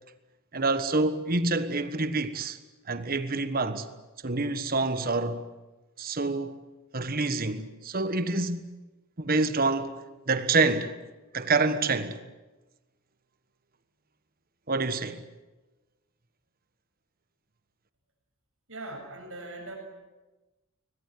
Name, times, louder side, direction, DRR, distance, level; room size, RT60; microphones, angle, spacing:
voice 1, 0.5-2.6 2.9-3.9 4.2-5.4 6.0-6.6 6.9-8.7 9.2-9.9 10.3-10.9 11.3-12.2 14.7-15.2, right 3 dB, 40° right, 1.4 m, -27 dB
voice 2, 18.7-19.7, right 2 dB, 65° right, 7.5 m, -40 dB
22.0 x 21.0 x 9.7 m
head